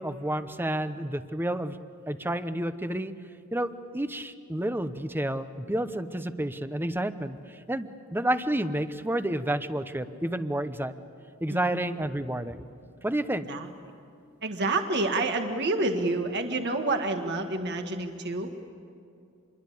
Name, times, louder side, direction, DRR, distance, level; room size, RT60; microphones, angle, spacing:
voice 1, 0.0-1.8 2.1-3.1 3.5-7.4 7.7-10.9 11.4-12.7 13.0-13.5, right 1 dB, 10° right, 11 dB, 0.9 m, -30 dB
voice 2, 11.5-11.8 13.5-13.7 14.4-18.5, right 2 dB, 55° right, 5 dB, 1.7 m, -28 dB
27.5 x 22.5 x 8.5 m, 2.5 s
head